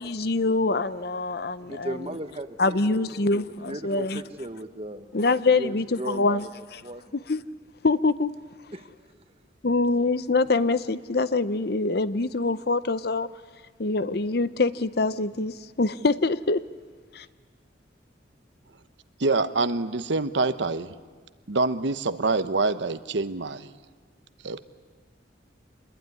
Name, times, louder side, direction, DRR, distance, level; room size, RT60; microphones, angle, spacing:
voice 1, 0.0-2.0 2.6-4.2 5.1-6.5 7.3-7.4 7.8-8.3 9.6-13.3 13.8-16.6 17.1-17.3, left 3 dB, 55° left, 15 dB, 0.7 m, -24 dB
voice 2, 1.6-5.2 5.5-6.5 6.8-7.1 8.7-8.9, right 1 dB, 30° right, 8 dB, 1.3 m, -37 dB
voice 3, 19.2-20.9 21.5-23.7 24.4-24.7, right 3 dB, 75° right, 11 dB, 1.0 m, -26 dB
26.5 x 21.5 x 9.8 m, 1.5 s
head